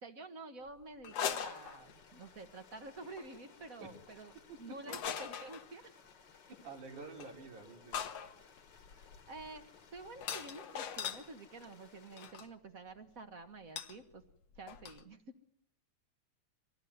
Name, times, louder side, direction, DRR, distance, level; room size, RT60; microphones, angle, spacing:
voice 1, 0.0-4.3 4.6-6.0 8.9-14.2 14.6-15.4, right 3 dB, 40° right, 8 dB, 1.2 m, -49 dB
sound 1, 1.0-2.3 3.0-3.3 4.9-5.7 7.2-7.3 7.9-11.3 12.2-12.5 13.8-14.0 14.2-14.3 14.6-15.0, left 8 dB, 65° left, 2.1 m, -41 dB
Stream, 1.1-12.3, left 6 dB, 40° left, 1.9 m, -61 dB
voice 2, 6.6-8.1, right 4 dB, 90° right, -1 dB, 5.0 m, -49 dB
25.5 x 18.5 x 9.5 m, 0.82 s
omnidirectional pair, 3.4 m